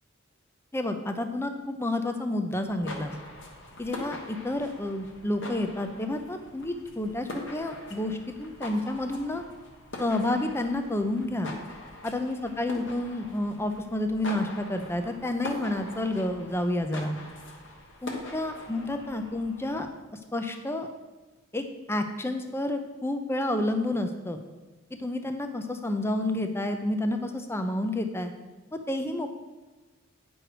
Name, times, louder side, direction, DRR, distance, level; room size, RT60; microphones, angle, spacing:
voice 1, 0.7-3.1 3.8-9.4 10.0-11.5 12.0-17.2 18.0-19.9 20.3-20.9 21.5-21.6 21.9-24.4 25.0-28.3 28.7-29.3, left 1 dB, 10° left, 7 dB, 0.5 m, -30 dB
sound 1, 2.6-19.9, left 1 dB, 55° left, 1.3 m, -43 dB
9.2 x 6.1 x 4.9 m, 1.2 s
head